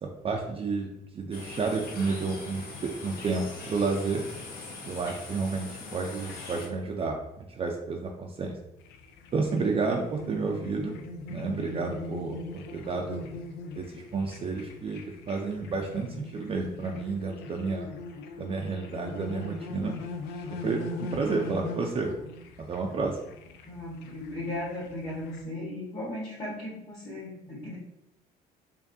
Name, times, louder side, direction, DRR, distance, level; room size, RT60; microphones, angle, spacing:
voice 1, 0.0-4.2 4.9-8.6 9.3-11.0 11.3-13.2 13.8-15.0 15.3-17.9 18.4-19.9 20.6-22.1 22.7-23.2, right 4 dB, 35° right, 1 dB, 0.4 m, -31 dB
sound 1, 1.3-6.7, left 3 dB, 65° left, 1.1 m, -41 dB
sound 2, 8.8-25.4, left 3 dB, 85° left, 0.5 m, -40 dB
voice 2, 23.7-27.8, left 1 dB, 35° left, -8 dB, 1.4 m, -37 dB
4.7 x 2.6 x 2.6 m, 0.83 s
cardioid pair, 110°, 17 cm